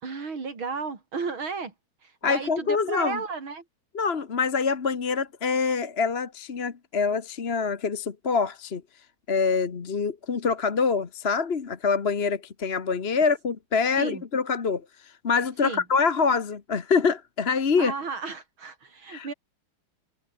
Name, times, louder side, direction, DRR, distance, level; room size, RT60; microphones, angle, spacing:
voice 1, 0.0-1.7 2.0-3.6 13.9-14.2 15.6-15.8 17.8-19.3, right 4 dB, 80° right, 4.4 m, -33 dB
voice 2, 2.2-3.2 3.9-8.8 9.3-17.9 19.1-19.3, left 5 dB, 35° left, 1.3 m, -25 dB
omnidirectional pair, 2.2 m